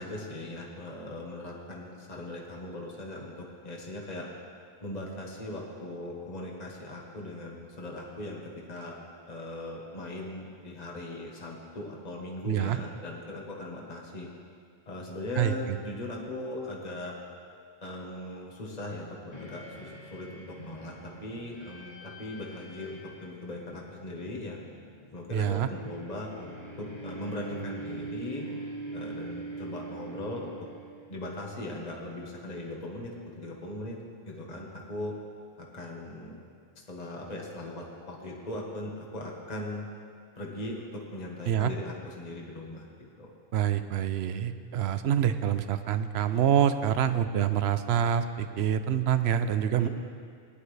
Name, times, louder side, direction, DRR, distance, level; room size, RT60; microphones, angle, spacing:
voice 1, 0.0-4.3 4.8-9.0 9.3-14.3 14.9-17.2 17.8-24.6 25.1-28.5 28.9-30.5 31.1-34.0 34.3-35.2 35.6-36.3 36.9-39.9 40.4-43.3 49.8-49.9, left 1 dB, 40° left, -1 dB, 1.5 m, -39 dB
voice 2, 12.5-12.8 15.4-15.5 25.3-25.7 41.5-41.7 43.5-49.9, right 9 dB, 75° right, 11 dB, 0.9 m, -26 dB
sound 1, 19.3-31.4, right 2 dB, 90° left, 2.6 m, -43 dB
18.5 x 11.0 x 3.3 m, 2.2 s
omnidirectional pair, 1.1 m